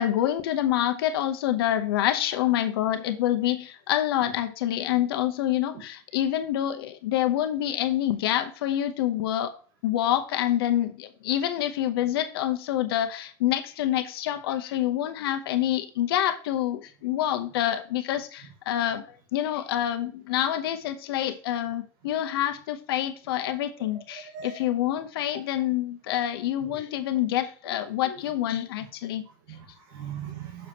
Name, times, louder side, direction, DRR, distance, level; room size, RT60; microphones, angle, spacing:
voice 1, 0.0-9.5 9.8-19.0 19.3-29.3, left 12 dB, 80° left, 0.9 m, -27 dB
voice 2, 23.8-24.6 25.3-25.4 26.6-26.8 28.0-28.2 29.3-30.7, right 8 dB, 60° right, 1.7 m, -41 dB
6.9 x 6.5 x 3.0 m
supercardioid pair, 165°, 13 cm